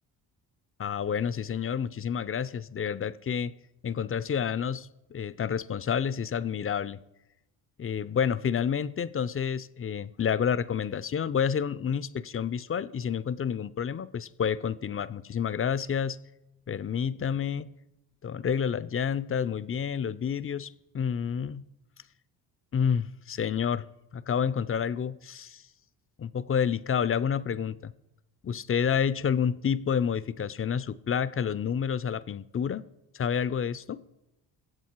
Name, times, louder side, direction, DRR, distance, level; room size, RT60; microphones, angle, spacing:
voice 1, 0.8-3.5 3.8-7.0 7.8-16.2 16.7-17.7 18.2-21.6 22.7-23.9 24.1-25.6 26.2-27.9 28.4-32.8 33.1-34.0, left 7 dB, 25° left, 18 dB, 0.6 m, -29 dB
22.5 x 7.8 x 4.6 m, 0.92 s
hypercardioid pair, 55°, 49 cm